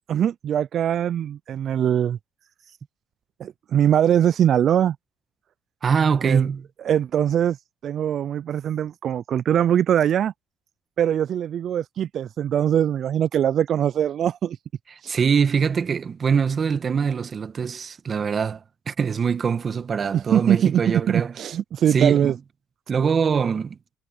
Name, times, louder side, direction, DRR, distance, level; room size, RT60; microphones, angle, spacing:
voice 1, 0.1-2.2 3.4-5.0 6.2-6.5 6.9-7.6 7.8-10.3 11.0-14.6 15.0-15.2 20.1-22.3, right 10 dB, 55° right, 0.3 m, -22 dB
voice 2, 5.8-6.6 15.1-18.6 18.9-21.4 21.9-22.4 22.9-23.7, right 6 dB, 40° right, 1.5 m, -23 dB
supercardioid pair, 90°, 0 cm